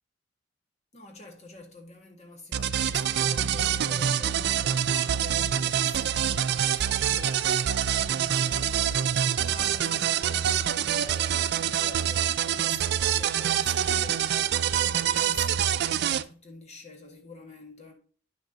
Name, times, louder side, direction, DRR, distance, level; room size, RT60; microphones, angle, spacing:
voice 1, 0.9-17.9, left 2 dB, 35° left, 1.6 m, -47 dB
sound 1, 2.5-16.2, right 9 dB, 55° right, 0.4 m, -26 dB
10.0 x 6.2 x 2.8 m
head